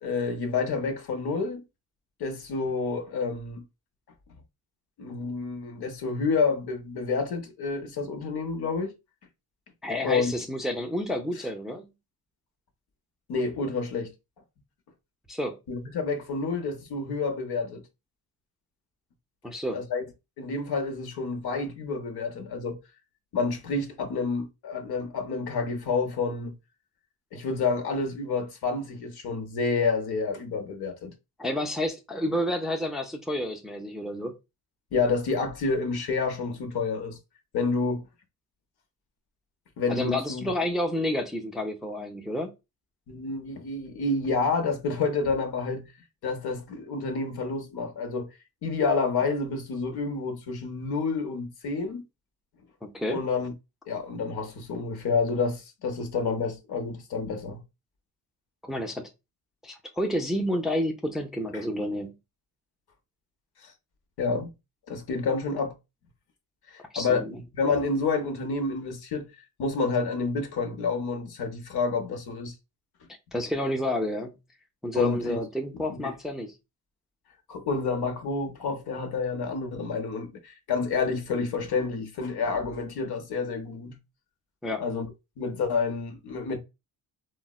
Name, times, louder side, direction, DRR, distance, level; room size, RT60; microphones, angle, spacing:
voice 1, 0.0-1.6 2.2-3.6 5.0-8.9 10.0-10.3 13.3-14.1 15.7-17.8 19.7-20.0 20.4-22.8 23.3-26.5 27.3-31.1 34.9-37.2 37.5-38.1 39.8-40.5 43.1-45.9 46.2-48.3 48.6-52.0 53.1-53.5 53.9-57.6 61.5-61.6 63.6-63.7 64.2-64.5 64.9-65.7 66.7-72.5 74.9-75.4 75.7-76.1 77.5-84.0 84.8-85.1 85.4-86.6, left 4 dB, 80° left, 0.8 m, -29 dB
voice 2, 9.8-11.9 15.3-15.6 19.4-19.8 31.4-34.3 39.9-42.5 52.8-53.2 58.6-59.1 59.6-62.1 66.9-67.4 73.3-74.4 74.8-76.5 84.6-84.8, left 1 dB, ahead, 0.4 m, -30 dB
3.9 x 2.1 x 2.3 m
cardioid pair, 115°, 38 cm